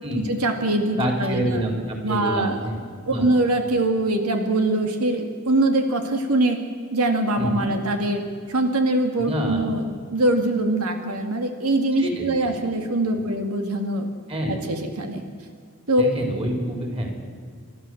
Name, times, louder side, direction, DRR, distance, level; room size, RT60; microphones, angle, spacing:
voice 1, 0.1-1.6 2.0-2.6 3.1-6.6 6.9-8.2 8.5-9.8 10.1-14.1 14.5-15.2 15.9-16.1, right 2 dB, 90° right, 5 dB, 2.1 m, -23 dB
voice 2, 0.9-1.8 2.1-2.8 3.0-3.3 7.4-7.7 9.2-9.7 12.0-12.3 14.3-14.6 16.0-17.1, equal, 25° right, 2 dB, 4.2 m, -27 dB
30.0 x 12.5 x 7.9 m, 2.1 s
head